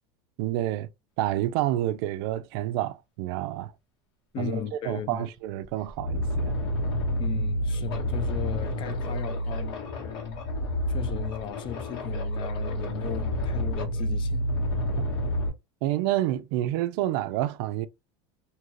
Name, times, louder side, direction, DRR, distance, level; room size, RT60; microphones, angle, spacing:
voice 1, 0.4-0.9 1.2-3.7 4.4-6.5 15.0-15.1 15.8-17.9, right 14 dB, 70° right, 0.4 m, -28 dB
voice 2, 4.3-5.3 7.2-10.4 10.9-14.5, left 9 dB, 40° left, 0.5 m, -36 dB
sound 1, 5.1-5.2 5.6-15.5, equal, 75° left, 1.5 m, -29 dB
2.8 x 2.4 x 3.0 m
supercardioid pair, 120°, 13 cm